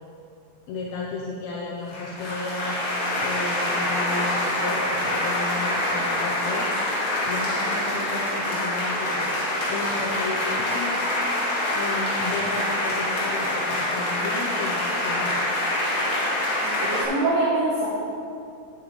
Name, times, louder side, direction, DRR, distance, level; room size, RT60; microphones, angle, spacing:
voice 1, 0.7-2.8 3.2-6.7 7.2-9.3 9.7-11.1 11.7-15.4, left 3 dB, 80° left, -2 dB, 1.6 m, -33 dB
sound 1, 1.9-17.0, left 1 dB, 55° left, 1.0 m, -26 dB
voice 2, 16.6-17.9, right 2 dB, 75° right, -9 dB, 3.1 m, -24 dB
10.5 x 7.0 x 3.8 m, 2.5 s
omnidirectional pair, 3.9 m